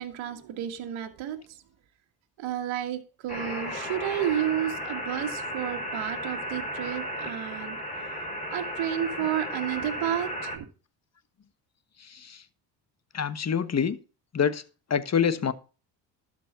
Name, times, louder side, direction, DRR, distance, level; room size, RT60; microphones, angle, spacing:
voice 1, 0.0-1.6 2.4-7.8 8.5-10.7, right 11 dB, 70° right, 1.9 m, -31 dB
sound 1, 3.3-10.6, equal, 15° left, 5.3 m, -34 dB
voice 2, 12.1-12.4 13.1-14.0 14.3-14.6 14.9-15.5, left 7 dB, 35° left, 1.3 m, -26 dB
12.5 x 5.4 x 6.8 m
supercardioid pair, 70°, 48 cm